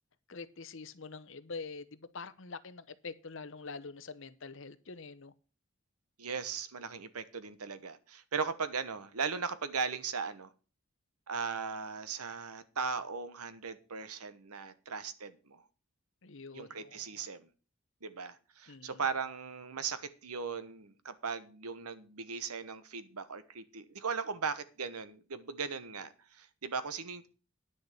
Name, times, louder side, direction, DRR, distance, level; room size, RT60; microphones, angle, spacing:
voice 1, 0.3-5.3 16.2-17.0 18.7-19.0, left 4 dB, 60° left, 14 dB, 0.9 m, -45 dB
voice 2, 6.2-10.5 11.3-15.6 16.5-17.5 18.0-27.3, right 5 dB, 90° right, 13 dB, 1.1 m, -38 dB
10.0 x 6.6 x 6.6 m, 0.35 s
head